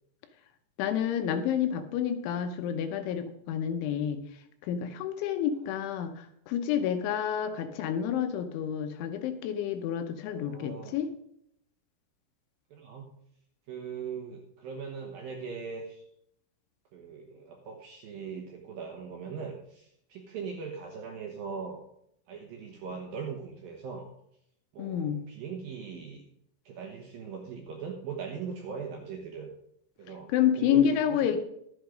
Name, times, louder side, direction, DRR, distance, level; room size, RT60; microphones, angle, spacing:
voice 1, 0.8-4.2 4.6-11.1 24.8-25.2 30.3-31.4, left 9 dB, 80° left, 8 dB, 3.2 m, -29 dB
voice 2, 5.6-6.1 7.3-7.7 10.2-11.0 12.7-13.1 13.7-16.0 16.9-21.8 22.3-24.1 24.7-26.2 26.7-29.5 30.0-31.4, right 6 dB, 70° right, 1 dB, 2.3 m, -40 dB
12.0 x 8.2 x 5.1 m, 0.72 s
omnidirectional pair, 5.6 m